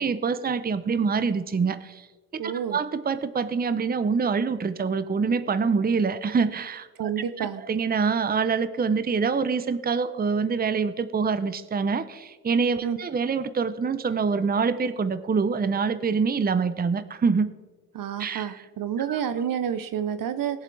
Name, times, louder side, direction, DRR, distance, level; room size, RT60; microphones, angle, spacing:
voice 1, 0.0-2.1 2.4-17.5 18.2-18.7 19.1-19.2, right 5 dB, 25° right, 13 dB, 0.7 m, -25 dB
voice 2, 2.4-2.8 7.0-7.6 12.8-13.0 17.9-20.6, right 8 dB, 60° right, 12 dB, 0.9 m, -29 dB
19.5 x 7.4 x 3.4 m, 1.3 s
supercardioid pair, 65°, 38 cm